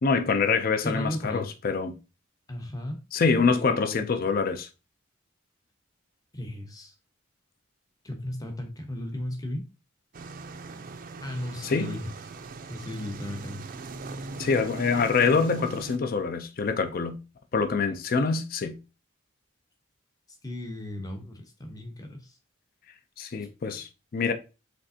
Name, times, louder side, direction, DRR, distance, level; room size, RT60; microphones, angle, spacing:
voice 1, 0.0-1.9 3.1-4.7 11.6-12.0 14.4-17.2 17.5-18.8 23.2-24.3, left 4 dB, 45° left, 0.4 m, -25 dB
voice 2, 0.8-1.5 2.5-3.0 3.4-4.0 6.3-6.9 8.0-9.6 11.2-12.1 12.7-13.6 20.4-22.4 23.4-23.5, left 1 dB, 20° left, 0.8 m, -35 dB
sound 1, 10.1-16.0, right 3 dB, 45° right, 0.4 m, -40 dB
5.2 x 3.4 x 2.7 m
head